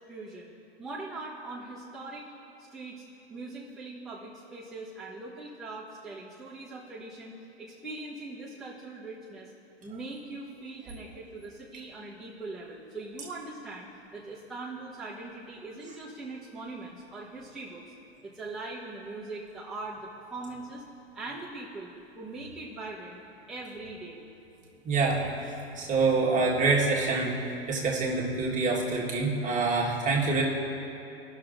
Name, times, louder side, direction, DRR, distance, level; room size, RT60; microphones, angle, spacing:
voice 1, 0.1-0.5 0.8-2.3 2.6-3.0 3.3-9.5 9.8-17.8 18.2-20.8 21.1-21.9 22.2-23.2 23.5-24.2, right 2 dB, ahead, -10 dB, 1.2 m, -41 dB
voice 2, 24.8-25.2 25.8-27.3 27.7-30.4, right 3 dB, 25° right, -3 dB, 1.6 m, -26 dB
17.5 x 6.2 x 2.6 m, 2.9 s
hypercardioid pair, 105°, 33 cm